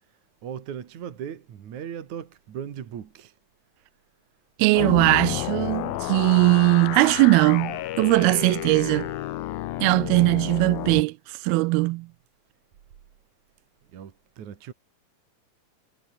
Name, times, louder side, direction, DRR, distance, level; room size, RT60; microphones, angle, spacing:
voice 1, 0.4-3.3 13.9-14.1 14.4-14.7, right 8 dB, 55° right, 3.2 m, -37 dB
voice 2, 4.6-9.1 9.8-11.2 11.4-12.1, right 22 dB, 90° right, 2.5 m, -20 dB
sound 1, 4.7-11.0, left 16 dB, 75° left, 2.7 m, -31 dB
omnidirectional pair, 4.3 m